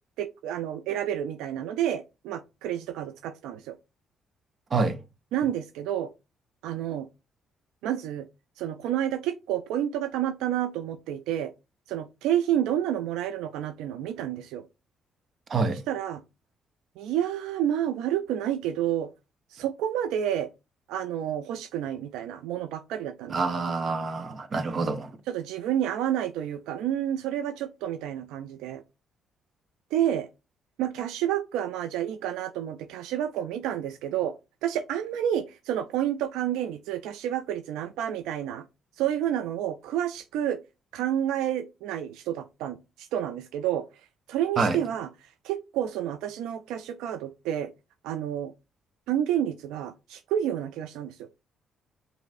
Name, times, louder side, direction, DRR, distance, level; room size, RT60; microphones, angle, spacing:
voice 1, 0.2-3.7 5.3-6.1 6.6-7.1 7.8-8.2 8.6-11.5 11.9-14.6 15.7-16.2 17.0-19.1 19.5-20.5 20.9-23.4 25.3-28.8 29.9-30.3 30.8-34.3 34.6-38.6 39.0-40.6 40.9-43.8 44.3-45.1 45.4-47.7 48.0-48.5 49.1-51.3, right 10 dB, 85° right, 0.4 m, -29 dB
voice 2, 15.5-15.8 23.3-25.1 44.6-44.8, right 4 dB, 45° right, 0.8 m, -26 dB
5.2 x 3.1 x 2.4 m
supercardioid pair, 75°, 0 cm